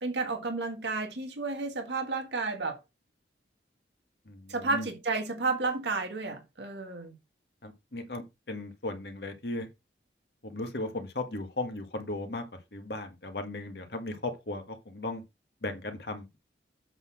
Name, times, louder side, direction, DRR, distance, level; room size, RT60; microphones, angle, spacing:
voice 1, 0.0-2.8 4.5-7.1, right 3 dB, 75° right, 1.7 m, -32 dB
voice 2, 4.3-4.9 7.6-9.7 10.4-12.4 12.7-15.2 15.6-16.4, left 2 dB, 60° left, 1.6 m, -36 dB
7.9 x 3.9 x 6.1 m
head